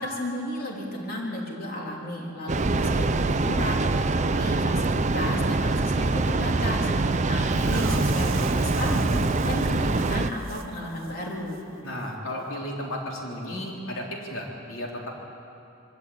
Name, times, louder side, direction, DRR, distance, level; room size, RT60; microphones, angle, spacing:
voice 1, 0.0-11.6, left 1 dB, 45° left, -2 dB, 3.6 m, -33 dB
Train, 2.5-10.3, right 3 dB, 35° right, 0.5 m, -24 dB
sound 1, 7.5-10.7 11.0-11.1 11.5-11.6, right 4 dB, 70° right, 1.2 m, -37 dB
voice 2, 11.8-15.1, left 1 dB, 70° left, -2 dB, 3.7 m, -34 dB
23.0 x 13.5 x 8.8 m, 2.9 s
head